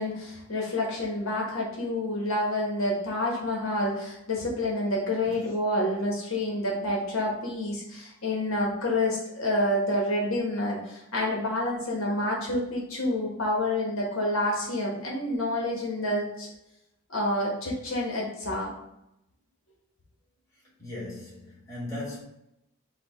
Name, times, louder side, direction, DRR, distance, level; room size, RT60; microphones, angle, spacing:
voice 1, 0.0-16.5 17.1-18.7, left 1 dB, 70° left, 1.1 m, -28 dB
voice 2, 5.2-5.5 20.8-22.2, left 2 dB, 15° left, 1.5 m, -38 dB
4.9 x 2.2 x 4.7 m
head